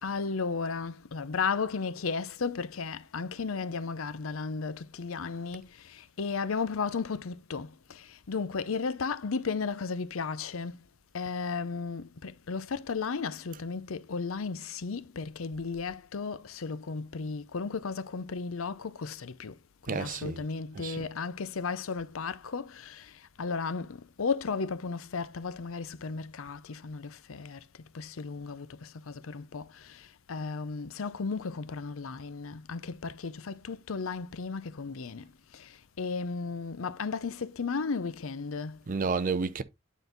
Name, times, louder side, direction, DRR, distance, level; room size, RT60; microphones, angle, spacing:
voice 1, 0.0-10.8 11.1-38.8, left 5 dB, 70° left, 0.6 m, -35 dB
voice 2, 19.9-20.4 20.8-21.0 38.9-39.6, right 4 dB, 40° right, 0.6 m, -30 dB
9.2 x 4.0 x 3.8 m
head